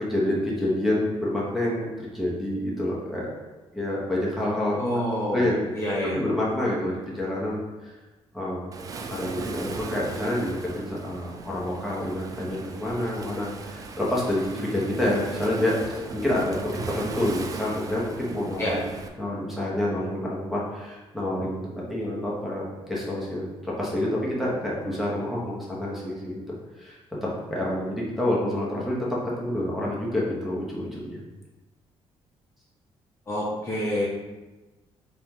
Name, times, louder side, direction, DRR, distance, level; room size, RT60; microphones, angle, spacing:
voice 1, 0.0-3.3 3.7-5.0 5.3-5.6 6.1-7.9 8.3-8.7 9.1-18.8 19.2-26.4 26.8-27.0 27.5-29.1 29.4-31.2, left 1 dB, ahead, -6 dB, 1.0 m, -28 dB
voice 2, 4.8-6.2 18.6-18.8 33.3-34.1, equal, 25° left, -6 dB, 0.8 m, -27 dB
Waves surf, 8.7-19.1, right 4 dB, 35° right, 0.3 m, -38 dB
4.2 x 3.0 x 3.7 m, 1.2 s
cardioid pair, 155°, 11 cm